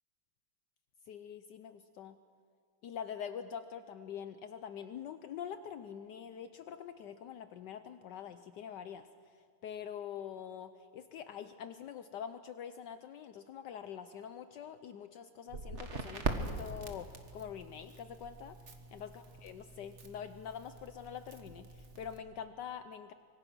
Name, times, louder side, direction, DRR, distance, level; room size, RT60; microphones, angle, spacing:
voice 1, 1.1-2.2 2.8-9.1 9.3-18.6 18.9-23.1, left 8 dB, 70° left, 10 dB, 1.3 m, -45 dB
Crackle, 15.5-22.2, right 3 dB, 40° right, 1.8 m, -42 dB
25.0 x 23.5 x 6.1 m, 2.1 s
omnidirectional pair, 2.0 m